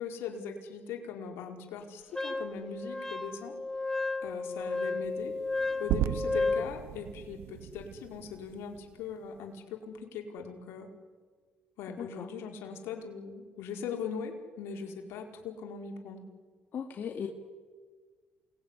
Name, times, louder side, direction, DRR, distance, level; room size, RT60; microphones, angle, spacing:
voice 1, 0.0-3.5 4.2-5.3 5.8-10.9 11.8-16.3, left 6 dB, 80° left, 2 dB, 5.0 m, -40 dB
Wind instrument woodwind instrument, 2.1-6.7, left 3 dB, 10° left, 2.0 m, -33 dB
sound 1, 5.0-9.4, right 12 dB, 80° right, 0.8 m, -37 dB
voice 2, 11.9-12.3 16.7-17.3, left 7 dB, 55° left, 2 dB, 2.4 m, -37 dB
28.5 x 20.5 x 9.9 m, 1.5 s
supercardioid pair, 70°, 4 cm